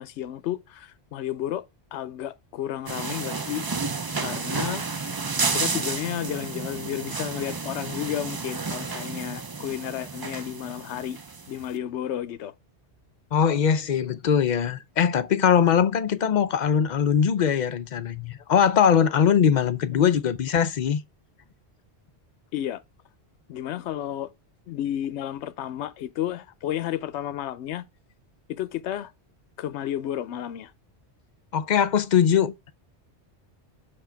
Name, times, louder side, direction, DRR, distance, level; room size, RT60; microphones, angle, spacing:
voice 1, 0.0-1.7 1.9-3.6 4.1-4.8 5.5-11.2 11.5-12.5 19.9-20.2 22.5-22.8 23.5-24.3 24.7-27.9 28.5-29.1 29.6-30.7, left 11 dB, 80° left, 0.9 m, -32 dB
sound 1, 2.9-11.6, right 4 dB, 30° right, 0.4 m, -31 dB
voice 2, 13.3-21.0 31.5-32.5, left 8 dB, 50° left, 0.6 m, -21 dB
6.3 x 4.8 x 4.5 m
omnidirectional pair, 1.1 m